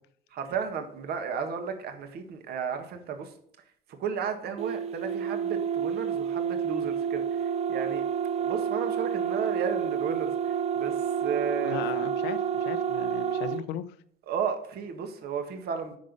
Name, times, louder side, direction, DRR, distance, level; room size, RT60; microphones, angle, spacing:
voice 1, 0.3-3.3 3.9-8.1 8.4-11.8 14.3-16.0, right 6 dB, 70° right, 7 dB, 1.7 m, -34 dB
sound 1, 4.6-13.6, right 8 dB, 40° right, 0.4 m, -29 dB
voice 2, 11.6-13.9, left 11 dB, 90° left, 15 dB, 0.7 m, -37 dB
9.2 x 6.5 x 5.3 m, 0.67 s
cardioid pair, 110°, 17 cm